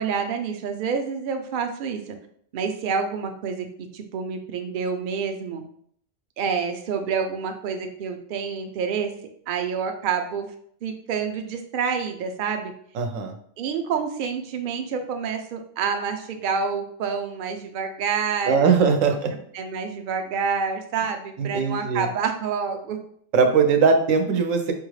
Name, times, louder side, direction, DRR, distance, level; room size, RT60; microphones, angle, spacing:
voice 1, 0.0-2.1 2.5-5.6 6.4-9.1 9.5-10.5 10.8-12.7 13.6-19.2 19.5-23.0, right 6 dB, 55° right, 5 dB, 0.6 m, -28 dB
voice 2, 12.9-13.3 18.5-19.3 21.4-22.1 23.3-24.7, right 5 dB, 85° right, 5 dB, 1.0 m, -20 dB
5.3 x 2.4 x 3.1 m, 0.63 s
omnidirectional pair, 1.3 m